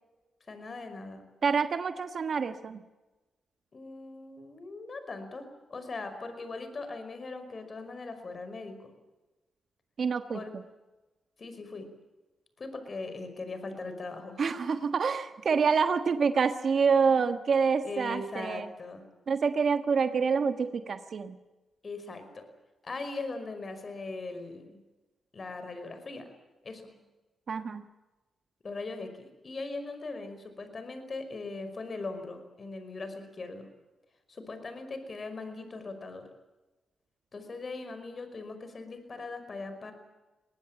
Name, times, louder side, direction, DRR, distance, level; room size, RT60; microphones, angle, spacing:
voice 1, 0.5-1.2 3.7-8.9 10.3-10.5 11.4-11.9 12.6-14.8 17.8-19.0 21.8-22.5 22.8-24.8 25.3-26.3 26.6-26.9 28.6-33.7 34.3-36.3 37.3-39.9, left 3 dB, 45° left, 9 dB, 5.3 m, -40 dB
voice 2, 1.4-2.8 10.0-10.4 14.4-18.7 19.3-21.4 27.5-27.8, right 5 dB, 60° right, 9 dB, 1.3 m, -27 dB
23.0 x 19.5 x 9.0 m, 1.1 s
cardioid pair, 75°, 0 cm